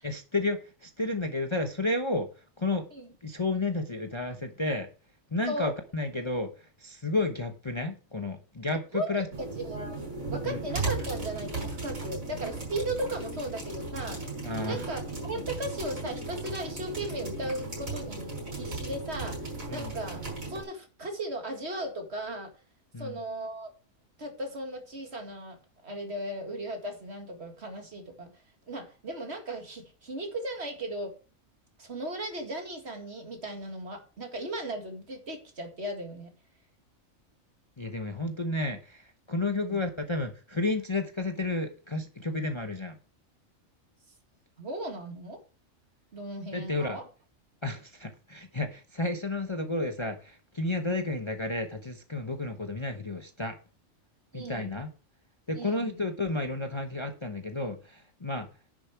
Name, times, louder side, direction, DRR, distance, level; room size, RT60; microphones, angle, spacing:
voice 1, 0.0-2.3 2.6-2.9 3.2-4.9 5.3-6.5 6.8-9.3 10.4-10.6 14.4-14.8 19.7-19.9 22.9-23.2 37.8-43.0 46.5-47.0 47.6-53.5 54.3-54.9 55.5-58.5, left 2 dB, 25° left, 0.9 m, -31 dB
sound 1, 9.3-20.6, right 3 dB, 85° right, 6.0 m, -36 dB
voice 2, 9.6-10.0 10.3-14.3 14.6-22.5 23.0-23.7 24.2-25.6 25.8-28.3 28.7-31.2 31.8-36.3 39.6-39.8 44.6-45.4 46.1-47.1 50.9-51.1 54.3-54.8 55.5-56.0, right 1 dB, 50° right, 2.3 m, -36 dB
10.5 x 6.8 x 4.7 m
omnidirectional pair, 1.4 m